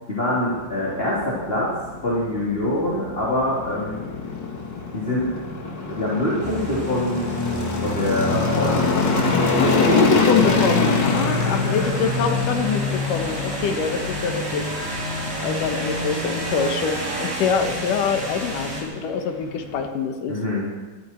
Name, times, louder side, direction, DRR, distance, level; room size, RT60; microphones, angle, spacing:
voice 1, 0.1-1.7 2.0-4.0 4.9-5.3 5.8-10.6 20.3-20.7, left 1 dB, 15° left, -7 dB, 3.1 m, -25 dB
sound 1, 0.5-19.9, left 4 dB, 40° left, 2.0 m, -26 dB
sound 2, 6.4-18.8, equal, 25° right, 4.1 m, -29 dB
voice 2, 9.6-14.7 15.3-20.4, left 5 dB, 80° left, 5 dB, 2.9 m, -25 dB
21.5 x 14.5 x 4.6 m, 1.4 s
omnidirectional pair, 3.8 m